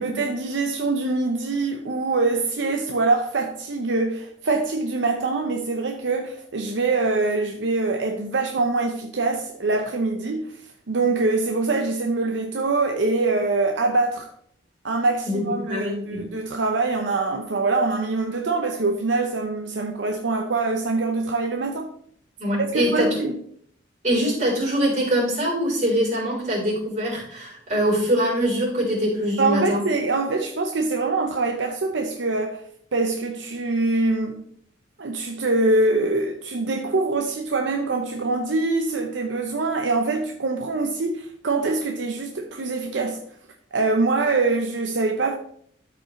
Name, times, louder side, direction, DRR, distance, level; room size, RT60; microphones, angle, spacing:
voice 1, 0.0-10.5 10.9-14.3 14.8-21.9 22.6-23.4 29.4-32.6 32.9-34.4 35.0-43.2 43.7-45.3, right 3 dB, 75° right, 0.7 m, -24 dB
voice 2, 15.3-16.2 22.4-23.3 24.0-29.8, equal, 40° right, 4.0 m, -23 dB
13.0 x 5.1 x 3.2 m
head